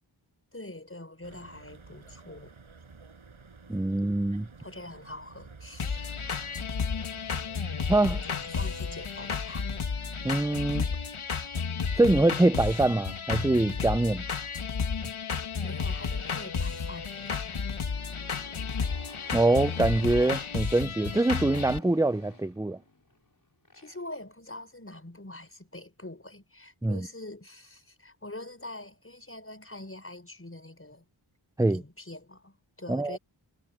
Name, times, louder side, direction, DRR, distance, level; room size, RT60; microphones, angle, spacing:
voice 1, 0.5-2.5 4.6-6.1 8.3-9.9 15.4-17.6 23.7-31.1 31.7-33.2, left 2 dB, 25° left, 6.0 m, -44 dB
sound 1, 1.2-10.7, right 4 dB, 80° right, 7.0 m, -51 dB
voice 2, 3.7-4.5 7.9-8.2 10.2-10.8 12.0-14.2 19.3-22.8 26.8-27.0 31.6-31.8 32.9-33.2, right 2 dB, 5° right, 0.6 m, -24 dB
sound 2, 5.8-21.8, left 5 dB, 85° left, 1.9 m, -32 dB
Motorcycle, 17.6-24.2, left 3 dB, 40° left, 6.2 m, -51 dB
wide cardioid pair, 55°, 48 cm